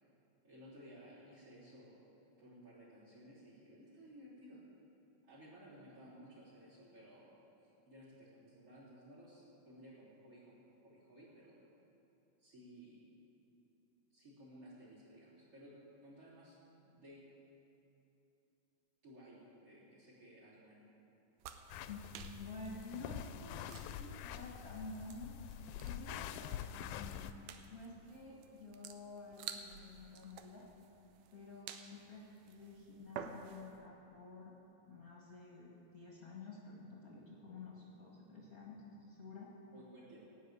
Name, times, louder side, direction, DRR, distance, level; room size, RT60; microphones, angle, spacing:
voice 1, 0.4-2.0 2.4-4.6 5.2-7.3 7.6-11.6 12.4-13.0 14.1-15.7 16.0-17.2 19.0-20.8 39.7-40.2, equal, 40° right, -8 dB, 4.4 m, -57 dB
sound 1, 21.4-33.8, right 8 dB, 75° right, 2.0 m, -53 dB
sound 2, 21.7-27.3, left 10 dB, 85° left, 2.3 m, -46 dB
voice 2, 21.9-25.3 25.8-27.2 27.7-30.7 31.3-34.5 34.9-39.5, left 3 dB, 40° left, -4 dB, 1.3 m, -51 dB
16.5 x 6.4 x 9.3 m, 3.0 s
omnidirectional pair, 4.1 m